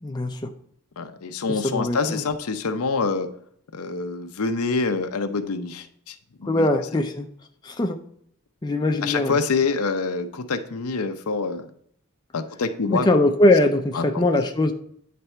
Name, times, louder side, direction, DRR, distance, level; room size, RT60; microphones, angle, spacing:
voice 1, 0.0-0.5 1.5-2.2 6.4-7.3 7.6-8.0 8.6-9.4 12.9-14.7, left 1 dB, 20° left, 4 dB, 0.4 m, -21 dB
voice 2, 1.0-3.3 3.7-6.7 9.0-11.7 12.3-13.1 13.9-14.3, left 4 dB, 85° left, 8 dB, 0.6 m, -26 dB
9.4 x 3.4 x 4.3 m, 0.67 s
head